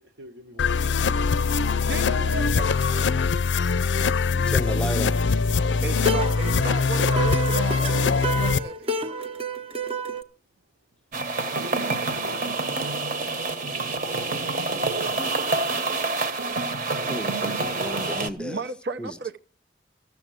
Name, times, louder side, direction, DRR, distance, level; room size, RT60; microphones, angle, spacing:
voice 1, 0.2-1.3 11.5-12.4 14.3-16.3, right 1 dB, 85° right, 1.5 m, -46 dB
sound 1, 0.6-8.6, left 5 dB, 85° left, 0.5 m, -22 dB
voice 2, 1.8-3.1 5.8-9.2 18.4-19.4, right 4 dB, 65° right, 0.8 m, -34 dB
voice 3, 4.5-5.2 17.1-18.6 19.0-19.1, left 1 dB, 5° left, 0.6 m, -33 dB
sound 2, 6.0-10.2, right 2 dB, 35° right, 0.8 m, -29 dB
sound 3, 11.1-18.3, right 3 dB, 50° right, 1.2 m, -27 dB
14.0 x 7.1 x 7.7 m
head